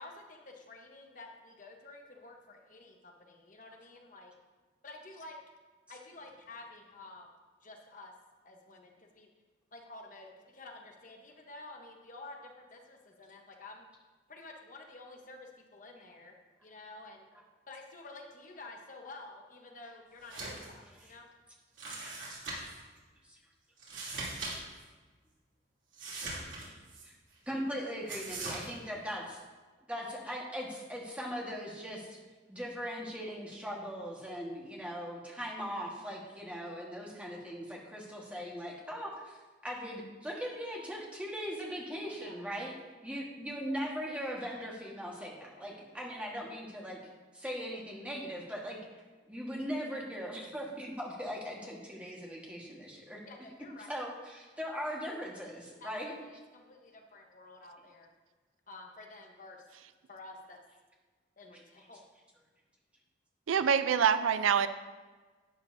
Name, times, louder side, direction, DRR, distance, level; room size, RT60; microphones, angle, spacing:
voice 1, 0.0-4.3 4.8-5.4 5.9-7.3 7.6-8.1 8.4-9.3 9.7-13.9 14.3-16.4 16.6-17.3 17.7-21.3 42.2-42.7 45.5-45.7 53.3-53.9 55.8-58.1 58.7-59.6 60.1-60.6 61.4-62.0, left 2 dB, 40° left, 2 dB, 1.0 m, -50 dB
sound 1, 20.2-20.7 21.0-21.1 21.8-22.8 23.8-24.5 24.8-24.9 25.9-27.0 28.1-28.7, right 2 dB, 70° right, 2.9 m, -40 dB
voice 2, 27.5-29.2 29.9-32.2 32.5-39.4 39.6-42.7 43.0-47.0 47.3-48.8 49.3-53.2 53.9-56.1, equal, 5° right, -3 dB, 1.4 m, -39 dB
voice 3, 63.5-64.7, right 7 dB, 90° right, 12 dB, 0.4 m, -25 dB
11.5 x 8.9 x 2.7 m, 1.4 s
head